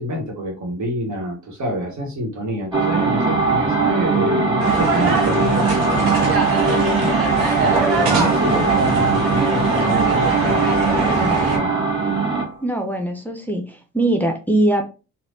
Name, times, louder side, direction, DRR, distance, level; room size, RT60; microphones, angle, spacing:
voice 1, 0.0-11.7, equal, 55° right, 1 dB, 1.4 m, -27 dB
sound 1, 2.7-12.5, right 4 dB, 15° right, 1.6 m, -20 dB
sound 2, 4.6-11.6, right 3 dB, 80° right, 1.0 m, -24 dB
voice 2, 12.6-14.8, right 1 dB, 5° left, 3 dB, 0.7 m, -21 dB
3.2 x 2.5 x 2.7 m, 0.32 s
supercardioid pair, 55°, 34 cm